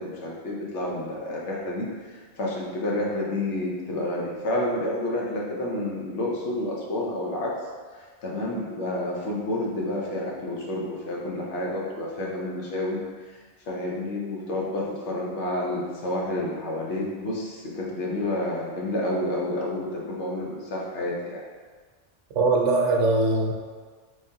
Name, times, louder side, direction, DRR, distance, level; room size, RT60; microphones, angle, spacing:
voice 1, 0.0-1.9 2.4-7.5 8.2-13.0 13.7-21.4, left 1 dB, 75° left, -3 dB, 1.1 m, -29 dB
voice 2, 22.4-23.5, right 3 dB, 85° right, 1 dB, 0.9 m, -21 dB
3.7 x 3.2 x 2.7 m, 1.5 s
omnidirectional pair, 1.2 m